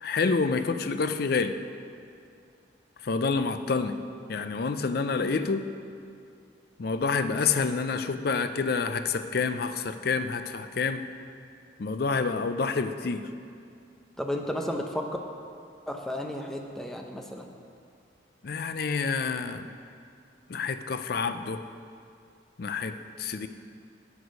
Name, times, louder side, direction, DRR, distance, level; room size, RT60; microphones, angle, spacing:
voice 1, 0.0-1.6 3.0-3.9 4.3-5.7 6.8-11.0 11.8-13.3 18.4-19.7 20.5-21.6 22.6-23.5, left 4 dB, 55° left, 10 dB, 0.5 m, -28 dB
voice 2, 14.2-15.1 15.9-17.5, left 1 dB, ahead, 2 dB, 0.7 m, -33 dB
9.4 x 8.3 x 5.2 m, 2.4 s
head